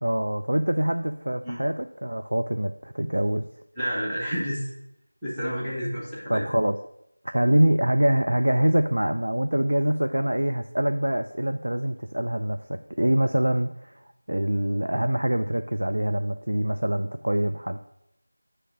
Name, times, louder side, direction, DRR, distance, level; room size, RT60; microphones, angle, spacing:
voice 1, 0.0-3.5 6.3-6.8 7.3-17.8, right 1 dB, 75° right, 7 dB, 0.4 m, -24 dB
voice 2, 3.8-4.7 5.2-6.4, equal, ahead, -14 dB, 1.0 m, -30 dB
7.6 x 3.3 x 6.2 m, 0.81 s
figure-of-eight pair, 175°, 0 cm